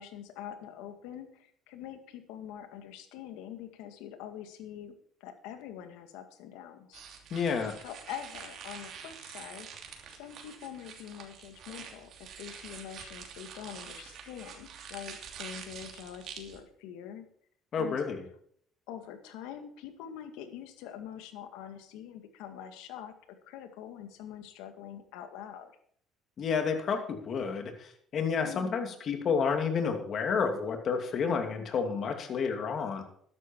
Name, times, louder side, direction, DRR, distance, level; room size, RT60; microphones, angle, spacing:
voice 1, 0.0-4.9 5.2-7.0 7.8-9.7 10.1-17.2 17.8-18.0 18.9-23.1 23.4-25.7 28.4-28.8, left 9 dB, 90° left, 7 dB, 2.0 m, -44 dB
sound 1, 6.9-16.6, right 7 dB, 60° right, 2.9 m, -46 dB
voice 2, 7.3-7.8 17.7-18.2 26.4-33.0, left 5 dB, 45° left, 5 dB, 2.7 m, -30 dB
13.0 x 11.0 x 4.6 m, 0.62 s
cardioid pair, 115°, 0 cm